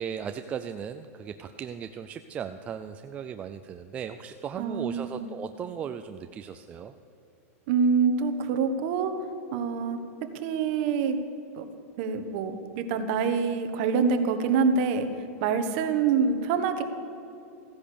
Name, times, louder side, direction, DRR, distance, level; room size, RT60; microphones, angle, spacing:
voice 1, 0.0-6.9, right 8 dB, 15° right, 8 dB, 0.3 m, -37 dB
voice 2, 4.6-5.3 7.7-9.1 9.5-10.0 10.4-11.2 11.5-11.6 12.0-15.1 15.4-16.8, right 5 dB, 45° right, 7 dB, 1.3 m, -26 dB
15.5 x 10.5 x 6.9 m, 2.8 s
supercardioid pair, 160°, 8 cm